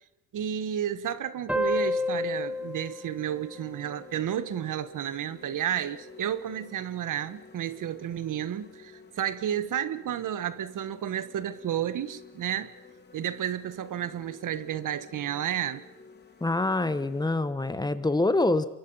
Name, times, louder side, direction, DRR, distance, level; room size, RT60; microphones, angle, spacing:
voice 1, 0.3-12.7 13.1-15.8, right 10 dB, 65° right, 1.4 m, -32 dB
sound 1, 0.5-0.7 1.3-17.4, left 4 dB, 30° left, 3.3 m, -53 dB
sound 2, 1.5-4.6, left 2 dB, 5° right, 1.5 m, -31 dB
voice 2, 16.4-18.6, left 2 dB, 10° left, 1.1 m, -25 dB
28.0 x 23.5 x 5.6 m
wide cardioid pair, 170°, 34 cm